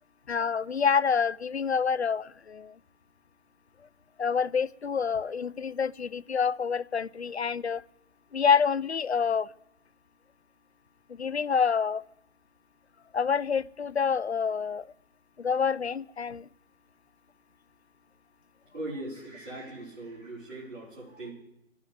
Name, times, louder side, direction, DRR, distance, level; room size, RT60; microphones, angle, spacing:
voice 1, 0.3-2.7 4.2-7.8 8.3-9.5 11.1-12.0 13.1-14.9 15.4-16.5, left 6 dB, 55° left, 0.5 m, -27 dB
voice 2, 18.7-21.3, right 2 dB, 40° right, 4.8 m, -40 dB
12.0 x 9.5 x 9.9 m
figure-of-eight pair, 155°, 40 cm